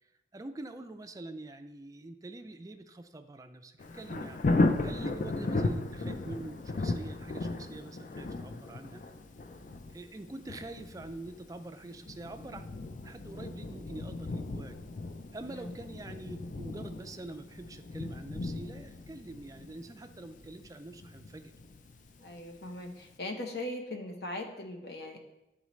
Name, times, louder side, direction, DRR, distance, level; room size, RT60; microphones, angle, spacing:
voice 1, 0.3-4.4 4.8-9.0 9.9-12.6 13.0-14.8 15.3-21.5, right 2 dB, 20° right, 7 dB, 0.4 m, -45 dB
Thunder, 3.8-22.6 23.0-23.1, left 2 dB, 45° left, 0.4 m, -36 dB
voice 2, 22.2-25.2, left 1 dB, 65° left, 3 dB, 0.9 m, -40 dB
9.6 x 4.0 x 3.1 m, 0.91 s
head